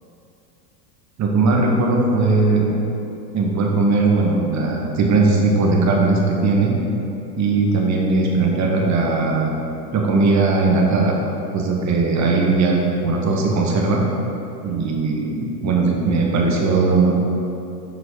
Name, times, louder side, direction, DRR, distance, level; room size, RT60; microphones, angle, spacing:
voice 1, 1.2-2.7 3.3-6.7 7.4-9.6 9.9-11.2 11.5-12.8 13.0-14.0 14.6-17.1, right 3 dB, 35° right, -1 dB, 1.7 m, -18 dB
7.8 x 6.0 x 4.8 m, 2.8 s
hypercardioid pair, 100°, 49 cm